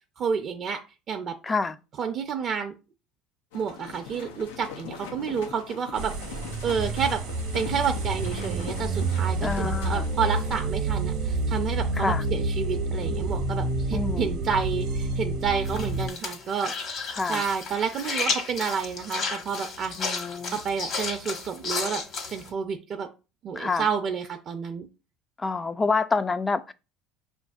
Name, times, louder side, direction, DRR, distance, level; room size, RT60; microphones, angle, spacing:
voice 1, 0.2-0.8 1.1-1.4 2.0-2.7 3.5-6.1 6.6-7.2 7.5-16.7 17.3-20.0 20.5-22.0 22.3-23.1 23.4-24.9, right 6 dB, 50° right, 0.5 m, -30 dB
voice 2, 1.4-1.8 9.4-10.1 12.0-12.2 13.9-14.3 17.2-17.4 20.0-20.6 23.6-23.9 25.4-26.7, left 4 dB, 20° left, 0.4 m, -27 dB
sound 1, 3.5-10.6, left 7 dB, 85° left, 0.4 m, -41 dB
sound 2, 6.0-16.1, right 2 dB, 70° right, 0.8 m, -28 dB
sound 3, 15.7-22.5, left 4 dB, 50° left, 1.3 m, -33 dB
5.7 x 2.5 x 2.3 m
supercardioid pair, 85°, 0 cm